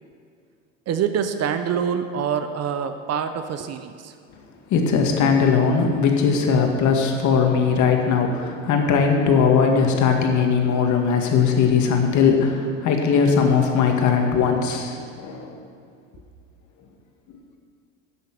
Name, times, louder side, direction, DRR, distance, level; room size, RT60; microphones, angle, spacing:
voice 1, 0.9-4.1, right 7 dB, 40° right, 9 dB, 0.9 m, -25 dB
voice 2, 4.7-15.5, left 6 dB, 50° left, 2 dB, 2.1 m, -19 dB
11.5 x 9.3 x 6.0 m, 2.3 s
hypercardioid pair, 75°, 38 cm